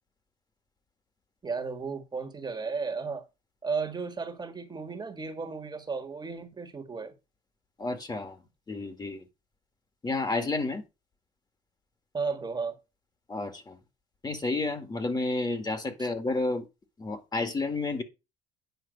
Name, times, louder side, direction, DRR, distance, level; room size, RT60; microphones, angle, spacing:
voice 1, 1.4-3.2 3.6-7.1 12.1-12.8 16.0-16.1, right 4 dB, 25° right, 1.7 m, -34 dB
voice 2, 7.8-8.4 8.7-9.2 10.0-10.8 13.3-13.8 14.2-16.6 17.0-18.0, left 3 dB, 25° left, 1.9 m, -30 dB
9.6 x 5.6 x 5.2 m
cardioid pair, 110°, 17 cm